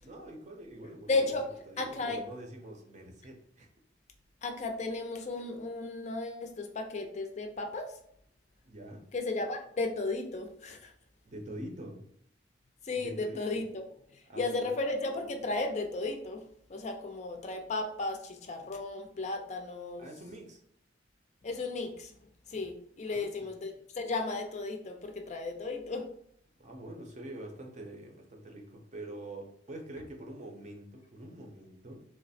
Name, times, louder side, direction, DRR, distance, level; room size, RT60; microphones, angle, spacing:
voice 1, 0.0-1.4 1.7-3.7 8.7-9.1 11.3-12.0 12.9-13.4 14.2-14.7 20.0-20.6 23.1-23.5 26.6-32.0, right 1 dB, 40° right, 2 dB, 0.6 m, -45 dB
voice 2, 1.1-1.5 1.8-2.2 4.4-7.9 9.1-10.9 12.8-13.8 14.1-20.0 21.4-22.1 22.5-26.1, left 3 dB, 40° left, 4 dB, 0.4 m, -34 dB
3.1 x 2.0 x 4.1 m, 0.69 s
head